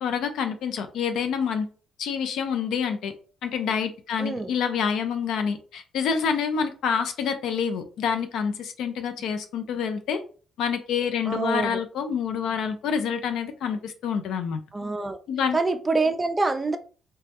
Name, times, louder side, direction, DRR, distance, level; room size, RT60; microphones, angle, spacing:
voice 1, 0.0-1.7 2.0-3.1 3.4-10.2 10.6-14.6 15.3-15.6, left 7 dB, 80° left, 0.3 m, -27 dB
voice 2, 4.2-4.5 11.3-11.8 14.7-15.2 15.5-16.8, right 3 dB, 20° right, 0.3 m, -25 dB
2.2 x 2.0 x 2.8 m
cardioid pair, 90°, 0 cm